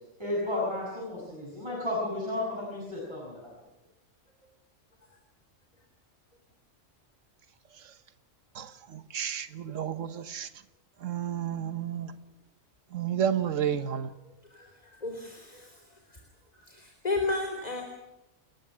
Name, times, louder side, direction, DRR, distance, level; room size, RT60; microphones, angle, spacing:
voice 1, 0.2-3.5, left 1 dB, 20° right, 7.6 m, -33 dB
voice 2, 8.5-10.6 11.0-12.1 12.9-14.1, right 9 dB, 80° right, 1.5 m, -32 dB
voice 3, 14.5-16.2 16.6-17.8, left 3 dB, 30° left, 3.4 m, -34 dB
29.5 x 14.0 x 9.0 m
omnidirectional pair, 1.3 m